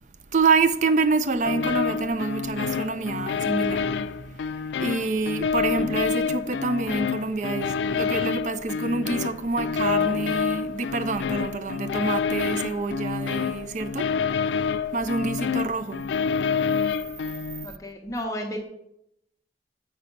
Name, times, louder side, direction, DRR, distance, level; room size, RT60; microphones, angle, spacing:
voice 1, 0.3-16.1, right 4 dB, 45° right, 0.4 m, -27 dB
sound 1, 1.4-17.7, left 6 dB, 85° left, 0.3 m, -27 dB
voice 2, 17.6-18.6, equal, 20° left, 0.8 m, -32 dB
7.1 x 5.7 x 5.2 m
head